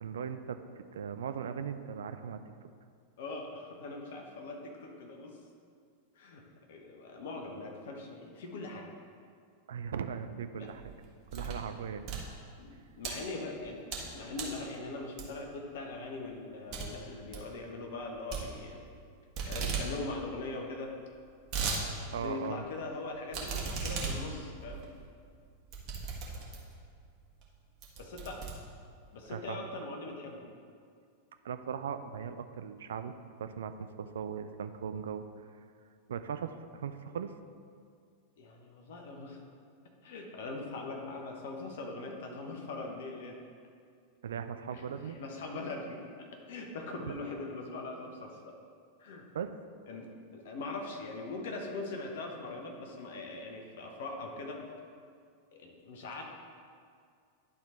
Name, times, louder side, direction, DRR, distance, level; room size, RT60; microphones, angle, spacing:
voice 1, 0.0-2.4 9.7-10.8 11.3-12.2 22.1-22.6 29.3-29.7 31.4-33.1 33.4-35.2 36.1-37.3 44.2-45.2 47.0-47.1 49.3-49.5, right 7 dB, 65° right, 9 dB, 0.3 m, -38 dB
voice 2, 3.2-5.4 6.2-6.4 6.7-8.9 10.6-10.7 12.6-13.8 14.1-18.8 19.5-20.9 22.1-24.9 28.0-28.4 29.1-30.5 38.4-39.4 40.0-43.4 44.7-48.6 49.0-49.2 49.9-54.6 55.5-56.2, left 3 dB, 55° left, 2 dB, 1.0 m, -41 dB
sound 1, 10.7-11.7 12.0-13.1 13.6-14.1 14.3-14.6 15.2-15.5 15.9-16.0 16.3-16.4 16.7-16.9 17.2-17.5 18.3-19.0 19.3-19.9 20.2-20.3 20.5-20.6 21.1-21.8 22.2-22.3 23.3-26.8 27.4-27.5 27.8-29.1, right 5 dB, 40° right, 1.6 m, -37 dB
11.0 x 3.8 x 4.2 m, 2.2 s
figure-of-eight pair, 90°, 0 cm